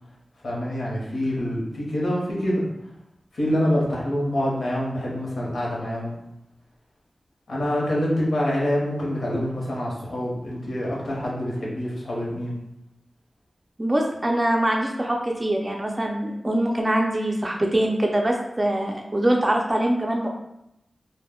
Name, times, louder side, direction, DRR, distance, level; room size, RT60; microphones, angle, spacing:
voice 1, 0.4-2.6 3.3-6.2 7.5-12.6, equal, 85° left, -4 dB, 0.8 m, -26 dB
voice 2, 13.8-20.3, right 1 dB, 25° right, 1 dB, 0.3 m, -23 dB
2.1 x 2.0 x 3.5 m, 0.83 s
wide cardioid pair, 85°, 0 cm